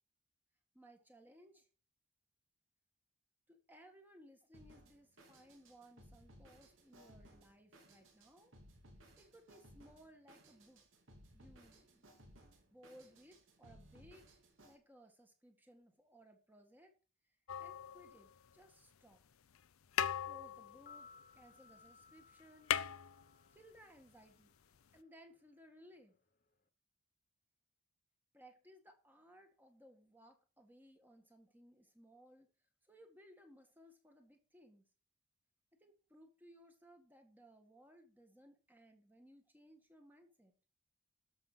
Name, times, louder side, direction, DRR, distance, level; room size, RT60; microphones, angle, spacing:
voice 1, 0.7-1.7 3.5-8.5 9.2-10.8 11.3-12.0 12.7-14.3 14.6-16.9 17.6-19.2 20.2-22.7 23.5-24.5 24.9-26.1 28.3-32.5 32.8-34.9 35.8-40.5, equal, 10° right, 4 dB, 1.7 m, -62 dB
Drum kit, 4.5-14.7, equal, 60° right, 3.6 m, -62 dB
sound 1, 17.5-18.6 19.5-19.7 19.9-21.8 22.1-22.2 22.4-23.8 25.0-25.1, left 9 dB, 75° left, 0.6 m, -39 dB
sound 2, 20.7-24.9 25.1-25.2, left 5 dB, 40° left, 1.1 m, -62 dB
13.0 x 6.3 x 5.6 m, 0.36 s
head